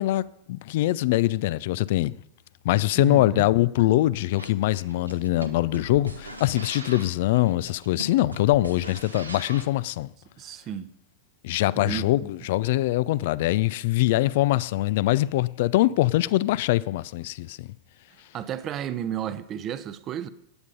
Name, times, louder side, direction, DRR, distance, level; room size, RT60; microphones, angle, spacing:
voice 1, 0.0-2.2 2.6-10.1 11.4-17.7, left 16 dB, 50° left, 0.4 m, -23 dB
voice 2, 3.0-3.5 10.4-10.9 11.7-12.3 18.3-20.3, right 9 dB, 30° right, 0.8 m, -32 dB
sound 1, 4.4-9.8, right 1 dB, 85° right, 1.4 m, -39 dB
15.0 x 9.6 x 5.3 m
figure-of-eight pair, 90°, 0 cm